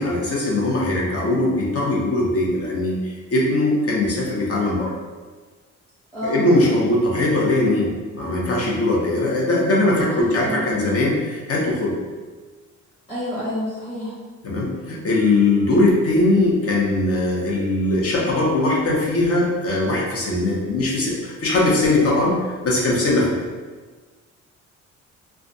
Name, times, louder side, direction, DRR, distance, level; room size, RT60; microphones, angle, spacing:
voice 1, 0.0-4.9 6.2-11.9 14.4-23.5, left 2 dB, 50° left, -3 dB, 0.9 m, -20 dB
voice 2, 6.1-6.5 10.2-10.6 13.1-14.2, left 1 dB, 15° left, -10 dB, 1.1 m, -28 dB
2.4 x 2.3 x 3.9 m, 1.4 s
cardioid pair, 90°, 30 cm